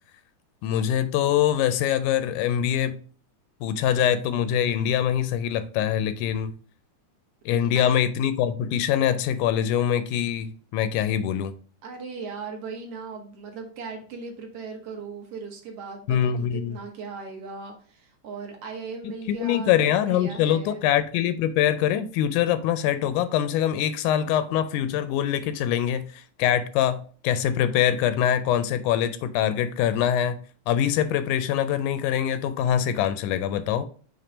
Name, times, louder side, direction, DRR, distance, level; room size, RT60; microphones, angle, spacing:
voice 1, 0.6-3.0 3.6-6.5 7.5-11.5 16.1-16.8 19.3-30.4 30.7-33.9, left 10 dB, 85° left, 2.0 m, -24 dB
voice 2, 7.5-7.9 11.8-20.8, right 4 dB, 60° right, 1.9 m, -38 dB
5.9 x 3.1 x 5.1 m
omnidirectional pair, 3.5 m